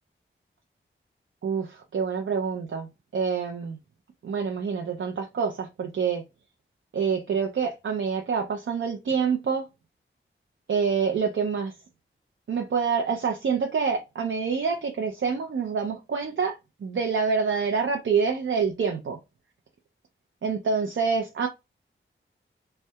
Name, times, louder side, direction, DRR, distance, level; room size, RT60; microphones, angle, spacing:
voice 1, 1.4-2.9 3.1-3.8 4.2-6.2 6.9-9.6 10.7-11.7 12.5-19.2 20.4-21.5, right 5 dB, 70° right, 0.5 m, -26 dB
2.7 x 2.2 x 2.2 m
wide cardioid pair, 110°, 21 cm